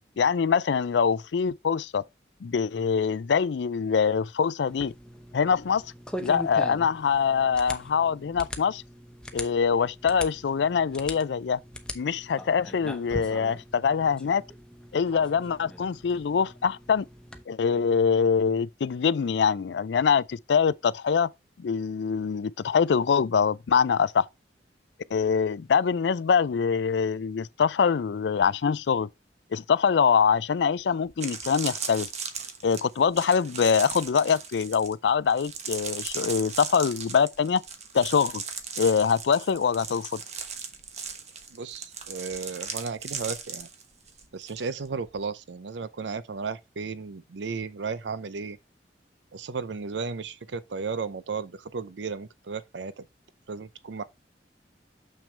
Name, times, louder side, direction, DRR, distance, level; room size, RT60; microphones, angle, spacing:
voice 1, 0.2-2.0 2.4-4.9 5.3-5.9 6.2-8.8 9.3-11.6 11.9-14.4 14.9-17.1 17.5-21.3 21.6-24.3 25.1-29.1 29.5-32.1 32.6-37.6 37.9-38.4 38.8-40.2, left 6 dB, 75° left, 0.4 m, -24 dB
sound 1, 4.7-17.4, left 1 dB, 5° left, 0.8 m, -41 dB
sound 2, 30.6-30.7 31.1-44.6 44.9-45.2, right 6 dB, 40° right, 1.2 m, -37 dB
voice 2, 41.5-43.7 44.3-48.6 49.3-53.0 53.5-54.0, right 5 dB, 85° right, 0.6 m, -34 dB
6.7 x 6.1 x 3.3 m
head